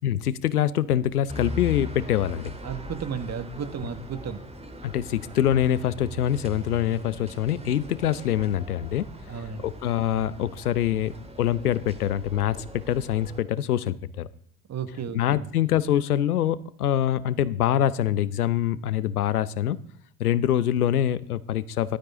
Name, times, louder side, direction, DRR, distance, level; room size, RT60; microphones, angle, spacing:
voice 1, 0.0-2.5 4.8-11.1 11.4-14.3 15.1-19.8 20.2-22.0, left 11 dB, 85° left, 18 dB, 0.8 m, -25 dB
sound 1, 1.3-13.4, equal, 15° right, 2.5 m, -40 dB
voice 2, 2.6-4.4 9.3-9.6 14.7-15.4, right 7 dB, 35° right, 11 dB, 1.8 m, -33 dB
17.5 x 12.5 x 3.7 m, 0.66 s
figure-of-eight pair, 65°, 44 cm